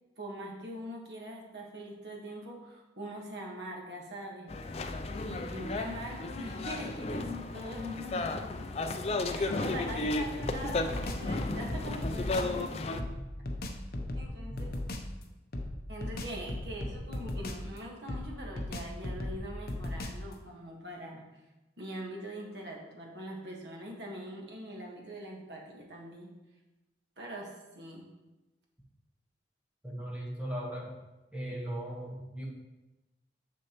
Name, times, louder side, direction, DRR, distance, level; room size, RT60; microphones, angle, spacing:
voice 1, 0.2-4.5 5.2-8.7 9.2-12.9 14.2-14.7 15.9-21.2 21.8-26.3 27.2-28.1, equal, 75° right, -1 dB, 1.5 m, -42 dB
sound 1, 4.5-13.0, left 2 dB, 35° left, 0.4 m, -34 dB
sound 2, 10.4-12.6 13.0-15.1 15.5-17.8 18.1-20.3, left 1 dB, 55° left, 0.7 m, -37 dB
voice 2, 29.8-30.9 31.3-32.4, right 1 dB, 5° right, -4 dB, 1.3 m, -38 dB
7.0 x 6.2 x 3.0 m, 1.0 s
head